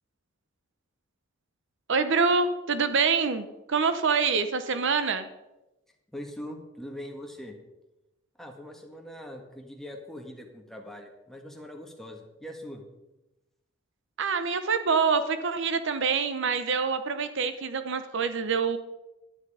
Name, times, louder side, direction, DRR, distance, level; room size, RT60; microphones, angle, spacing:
voice 1, 1.9-5.3 14.2-18.8, right 5 dB, 65° right, 10 dB, 0.8 m, -26 dB
voice 2, 6.1-7.5 8.4-12.8, equal, ahead, 2 dB, 1.6 m, -42 dB
11.0 x 9.7 x 4.9 m, 0.99 s
head